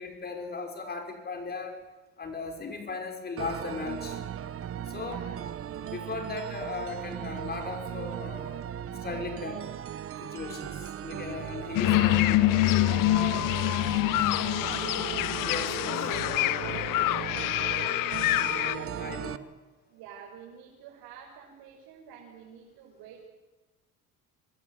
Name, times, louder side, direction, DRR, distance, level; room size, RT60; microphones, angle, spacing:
voice 1, 0.0-1.8 2.2-4.2 4.9-5.2 5.8-8.7 9.0-9.6 10.2-12.5 15.4-16.0 18.7-19.4, left 4 dB, 25° left, 3 dB, 6.0 m, -37 dB
sound 1, 3.4-19.4, right 10 dB, 35° right, 1.1 m, -37 dB
voice 2, 5.0-5.4 11.7-14.0 14.3-14.9 15.9-18.2 19.9-23.3, right 7 dB, 75° right, -2 dB, 6.8 m, -46 dB
sound 2, 11.7-18.7, left 17 dB, 60° left, 0.8 m, -26 dB
26.5 x 20.0 x 9.5 m, 1.1 s
cardioid pair, 135°, 37 cm